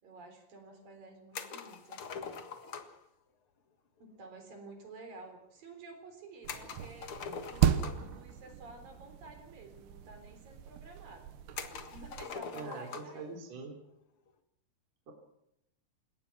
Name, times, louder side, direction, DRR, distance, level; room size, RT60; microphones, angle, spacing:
voice 1, 0.0-2.1 4.0-11.3 11.9-13.3, right 2 dB, 60° right, 5 dB, 5.5 m, -51 dB
sound 1, 1.3-3.1 6.5-8.2 9.3-9.4 9.6-9.7 10.5-10.6 11.6-13.2, left 6 dB, 50° left, 1.8 m, -43 dB
sound 2, 6.4-12.3, right 10 dB, 85° right, 3.3 m, -35 dB
voice 2, 12.5-13.8 15.1-15.2, right 3 dB, 45° right, 1 dB, 4.3 m, -43 dB
29.0 x 17.5 x 6.0 m, 0.79 s
omnidirectional pair, 4.6 m